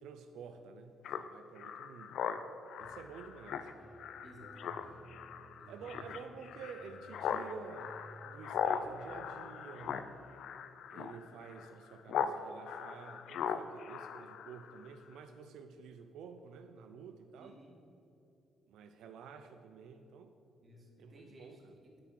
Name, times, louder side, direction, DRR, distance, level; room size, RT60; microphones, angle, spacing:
voice 1, 0.0-2.2 2.8-3.9 5.7-7.9 8.2-10.1 10.9-17.5 18.7-20.3 21.0-21.7, right 6 dB, 85° right, 7 dB, 0.5 m, -50 dB
Speech synthesizer, 1.0-12.4 12.6-14.9, left 8 dB, 70° left, 0.4 m, -40 dB
sound 1, 2.8-10.9, equal, 15° left, 0.9 m, -58 dB
voice 2, 4.2-5.0 5.5-6.1 17.4-17.8 20.6-22.0, right 1 dB, 35° right, -1 dB, 1.9 m, -56 dB
7.9 x 6.0 x 6.2 m, 2.8 s
cardioid pair, 90°, 0 cm